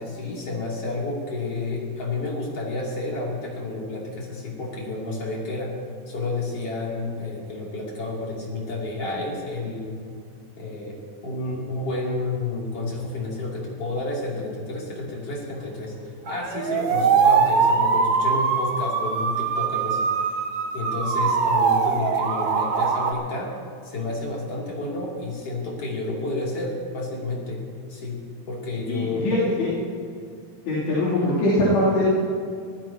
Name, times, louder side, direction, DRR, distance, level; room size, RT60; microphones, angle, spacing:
voice 1, 0.0-5.7 6.1-9.9 10.6-15.9 16.3-20.1 20.7-23.5 23.8-27.6 27.9-28.2 28.5-29.3, left 2 dB, 35° left, -4 dB, 3.6 m, -30 dB
sound 1, 16.3-23.1, right 5 dB, 70° right, 1.6 m, -22 dB
voice 2, 28.9-29.8 30.7-32.0, left 1 dB, 80° left, -10 dB, 5.4 m, -22 dB
25.0 x 16.0 x 3.0 m, 2.3 s
omnidirectional pair, 4.8 m